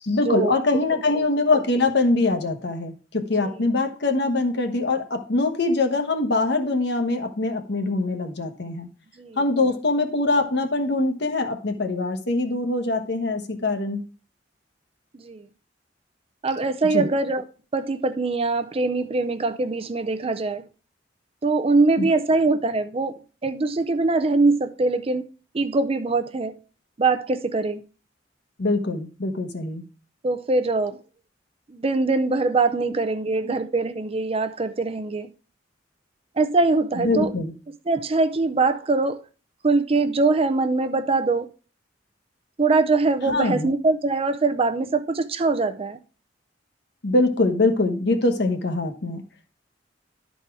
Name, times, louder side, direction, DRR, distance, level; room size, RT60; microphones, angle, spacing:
voice 1, 0.0-8.9 9.4-14.0 16.9-17.1 22.0-22.1 28.6-29.8 33.4-33.5 37.0-37.5 43.3-43.7 47.0-49.2, left 2 dB, 65° left, 1.1 m, -23 dB
voice 2, 16.4-17.4 17.7-20.6 21.4-25.3 25.5-26.5 27.0-27.8 30.2-31.0 31.7-35.3 36.4-37.3 37.9-39.2 39.6-41.5 42.6-46.0, right 3 dB, 30° right, 0.5 m, -22 dB
11.5 x 4.2 x 4.7 m
head